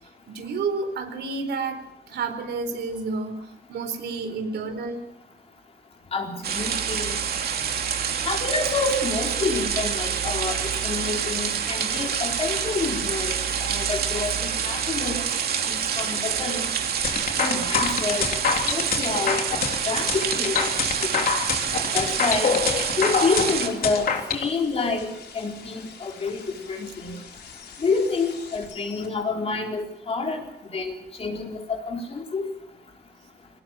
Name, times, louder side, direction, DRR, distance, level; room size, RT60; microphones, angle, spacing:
voice 1, 0.3-5.0, right 4 dB, 85° right, 7 dB, 4.3 m, -30 dB
voice 2, 6.1-7.2 8.2-15.2 15.6-16.7 17.4-18.3 18.7-19.4 19.9-20.7 21.0-21.2 21.9-22.6 23.0-27.1 27.8-30.5 30.7-32.5, left 4 dB, 35° left, 1 dB, 4.2 m, -28 dB
sound 1, 6.4-23.7, right 7 dB, 65° right, 2.9 m, -27 dB
sound 2, 17.0-24.4, left 6 dB, 60° left, 3.4 m, -25 dB
sound 3, 20.4-29.1, left 6 dB, 85° left, 5.0 m, -44 dB
24.0 x 19.0 x 7.6 m, 0.84 s
wide cardioid pair, 180°, 17 cm